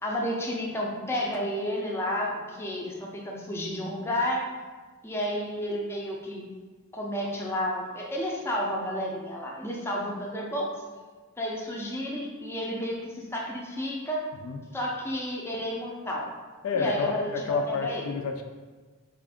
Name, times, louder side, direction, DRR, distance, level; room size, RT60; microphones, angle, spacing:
voice 1, 0.0-4.4 5.0-6.5 6.9-10.7 11.4-14.2 14.7-16.3 16.7-18.1, equal, 10° left, -2 dB, 0.5 m, -31 dB
voice 2, 16.6-18.4, left 4 dB, 70° left, 3 dB, 0.4 m, -29 dB
3.5 x 2.4 x 3.4 m, 1.4 s
head